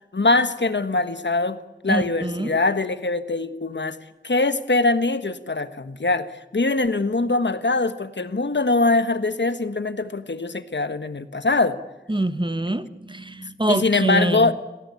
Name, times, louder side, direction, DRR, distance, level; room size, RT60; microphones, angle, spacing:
voice 1, 0.1-1.6 1.8-4.0 4.2-11.8 13.7-14.5, left 3 dB, 70° left, 11 dB, 1.4 m, -22 dB
voice 2, 1.9-2.6 12.1-14.5, right 1 dB, 25° right, 12 dB, 1.4 m, -25 dB
26.5 x 17.5 x 8.5 m, 1.1 s
wide cardioid pair, 60°, 19 cm